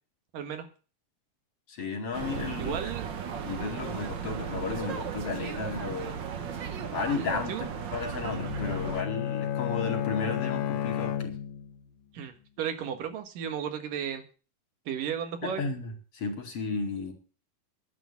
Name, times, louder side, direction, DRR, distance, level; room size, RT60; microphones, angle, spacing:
voice 1, 0.3-0.7 2.6-3.1 7.1-7.7 12.1-14.2 14.9-15.6, right 8 dB, 85° right, 7 dB, 3.3 m, -34 dB
voice 2, 1.7-2.8 3.4-6.2 6.9-11.4 15.4-17.1, left 4 dB, 50° left, 3 dB, 3.0 m, -34 dB
sound 1, 2.1-9.0, right 7 dB, 60° right, 1.2 m, -36 dB
Bowed string instrument, 8.2-11.8, left 9 dB, 80° left, 2.9 m, -32 dB
11.0 x 8.4 x 8.2 m, 0.37 s
omnidirectional pair, 3.7 m